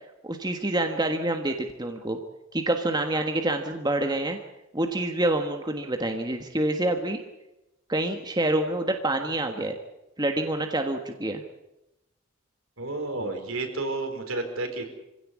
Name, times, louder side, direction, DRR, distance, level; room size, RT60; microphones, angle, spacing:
voice 1, 0.2-2.2 2.5-4.4 4.7-7.2 7.9-9.7 10.2-11.4, right 1 dB, 20° right, 4 dB, 1.4 m, -27 dB
voice 2, 12.8-14.9, right 2 dB, 70° right, 5 dB, 4.6 m, -31 dB
25.5 x 16.5 x 8.5 m, 0.93 s
head